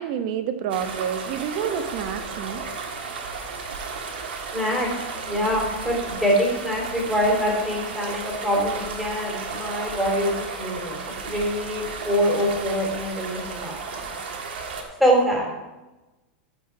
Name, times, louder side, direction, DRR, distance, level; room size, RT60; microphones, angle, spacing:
voice 1, 0.0-2.6, right 8 dB, 55° right, 8 dB, 1.1 m, -28 dB
sound 1, 0.7-14.8, right 5 dB, 80° right, 1.6 m, -34 dB
voice 2, 4.5-4.9 5.2-14.0 15.0-15.5, equal, ahead, -3 dB, 3.1 m, -24 dB
14.0 x 4.9 x 4.6 m, 1.1 s
supercardioid pair, 130°, 6 cm